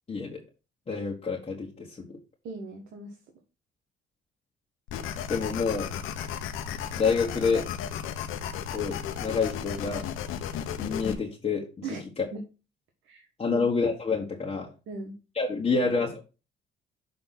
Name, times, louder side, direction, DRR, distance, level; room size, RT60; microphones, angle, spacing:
voice 1, 0.1-0.4 0.9-2.2 5.3-5.9 7.0-7.6 8.7-10.1 10.8-12.2 13.4-14.7 15.3-16.2, left 4 dB, 30° left, -3 dB, 1.7 m, -28 dB
voice 2, 2.4-3.2 11.8-12.0 12.3-12.4 13.0-13.6 14.9-15.1, right 3 dB, 80° right, 2 dB, 1.5 m, -38 dB
sound 1, 4.9-11.1, left 8 dB, 90° left, 0.9 m, -34 dB
6.9 x 3.4 x 5.8 m, 0.30 s
cardioid pair, 90°, 20 cm